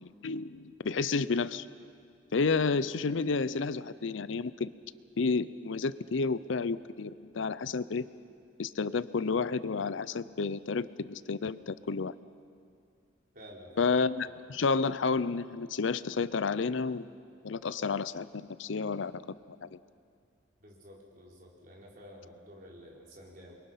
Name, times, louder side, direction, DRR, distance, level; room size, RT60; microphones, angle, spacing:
voice 1, 0.0-1.7 2.3-4.7 5.2-8.0 8.6-12.1 13.8-17.1 17.4-19.2 19.6-19.8, left 4 dB, 80° left, 16 dB, 0.6 m, -31 dB
voice 2, 13.3-13.9 20.6-23.6, equal, 45° right, -3 dB, 4.6 m, -51 dB
27.5 x 23.0 x 5.8 m, 2.3 s
head